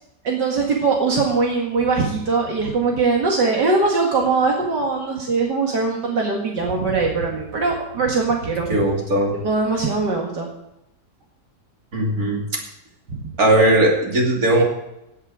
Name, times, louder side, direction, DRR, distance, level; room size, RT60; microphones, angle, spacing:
voice 1, 0.2-8.8 9.3-10.5 13.1-13.3, right 4 dB, 80° right, -1 dB, 2.5 m, -21 dB
voice 2, 8.7-9.3 11.9-12.6 13.4-14.6, right 1 dB, 55° right, 0 dB, 3.3 m, -18 dB
16.0 x 10.0 x 4.9 m, 0.86 s
omnidirectional pair, 1.8 m